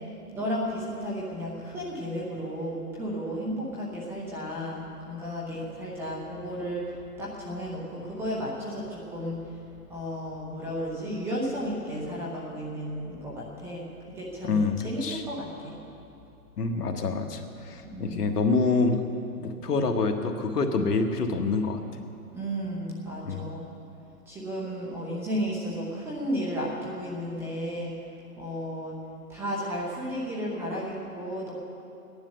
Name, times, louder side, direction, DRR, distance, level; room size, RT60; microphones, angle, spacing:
voice 1, 0.3-9.4 9.9-13.9 14.1-15.7 17.8-18.3 22.3-23.7 24.3-27.9 28.4-28.9 29.3-31.5, equal, 5° right, -5 dB, 0.7 m, -33 dB
voice 2, 14.4-15.2 16.6-19.0 19.4-21.8 23.2-23.4, left 3 dB, 80° left, 5 dB, 1.6 m, -26 dB
15.0 x 10.5 x 6.6 m, 2.7 s
hypercardioid pair, 150°, 47 cm